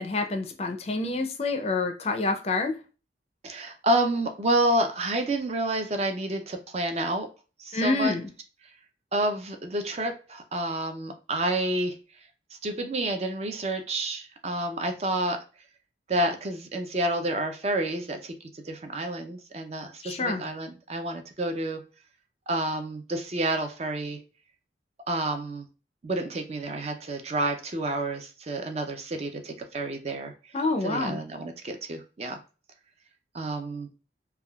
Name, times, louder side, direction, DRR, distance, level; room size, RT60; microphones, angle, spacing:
voice 1, 0.0-2.8 7.7-8.3 20.0-20.4 30.5-31.2, left 3 dB, 35° left, 0.4 m, -27 dB
voice 2, 3.4-7.3 7.6-8.1 9.1-12.0 12.6-15.4 16.1-18.3 18.6-21.8 22.5-24.2 25.1-25.7 26.0-30.3 30.8-32.4 33.3-33.9, right 1 dB, 35° right, 0.4 m, -29 dB
3.4 x 2.2 x 2.2 m
head